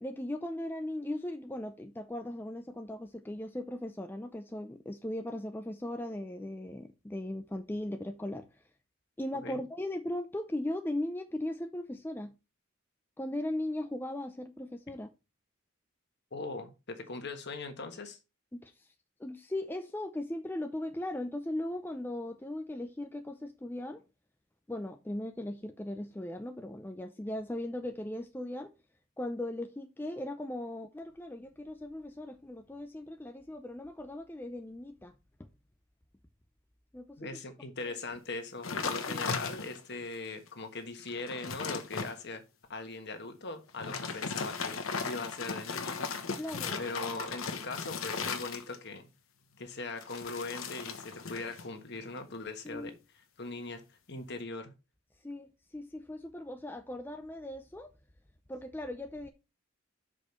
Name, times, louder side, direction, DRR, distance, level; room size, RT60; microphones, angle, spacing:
voice 1, 0.0-8.7 9.2-12.3 13.2-15.1 18.5-18.9 19.2-24.0 24.7-28.7 29.2-35.1 35.4-35.5 36.9-37.3 37.9-38.0 38.8-39.3 46.4-46.8 52.6-52.9 55.2-57.9 58.5-59.3, left 1 dB, 10° left, 0.5 m, -38 dB
voice 2, 16.3-18.2 37.2-42.4 42.7-44.8 45.0-46.4 46.8-49.1 49.6-52.9 53.4-53.8 54.1-54.7, left 3 dB, 55° left, 1.4 m, -40 dB
sound 1, 38.6-39.9 40.5-40.6 41.0-42.1 43.7-49.0 50.0-51.7 52.0-52.4, left 5 dB, 75° left, 1.2 m, -37 dB
6.5 x 5.1 x 5.3 m
head